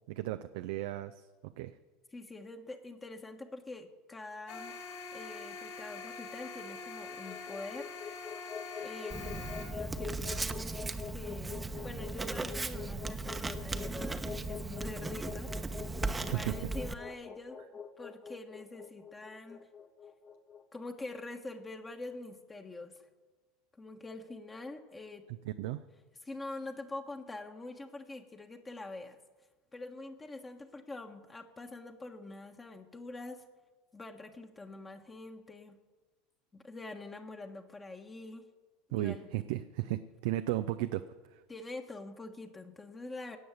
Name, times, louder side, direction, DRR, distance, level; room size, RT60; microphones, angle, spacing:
voice 1, 0.1-1.1 1.4-1.7 16.3-16.6 25.6-25.8 38.9-41.1 41.3-41.4, right 15 dB, 60° right, 10 dB, 0.6 m, -34 dB
voice 2, 2.1-4.7 5.1-7.9 8.8-15.5 16.3-17.6 18.0-19.7 20.7-22.9 23.7-25.3 26.2-29.2 29.7-33.4 33.9-35.8 36.5-38.4 39.0-39.3 41.5-43.4, left 2 dB, 20° left, 4 dB, 1.4 m, -45 dB
sound 1, 4.5-9.7, left 4 dB, 55° left, 4.1 m, -44 dB
sound 2, 6.9-21.1, left 7 dB, 35° left, 1.4 m, -45 dB
Writing, 9.1-16.9, right 3 dB, 15° right, 1.0 m, -37 dB
17.5 x 7.8 x 9.1 m, 1.3 s
figure-of-eight pair, 75°, 0 cm